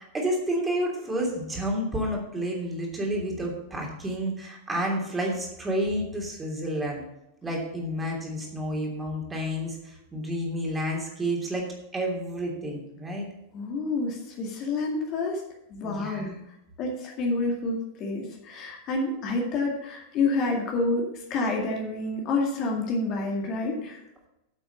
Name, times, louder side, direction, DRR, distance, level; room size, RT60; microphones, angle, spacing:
voice 1, 0.0-7.0 7.4-11.6 11.9-13.2 15.8-16.4, equal, 15° right, -1 dB, 3.0 m, -30 dB
voice 2, 13.5-15.4 15.7-16.3 16.8-24.0, left 3 dB, 35° left, 0 dB, 2.1 m, -28 dB
8.8 x 8.0 x 5.4 m, 0.87 s
figure-of-eight pair, 90°, 0 cm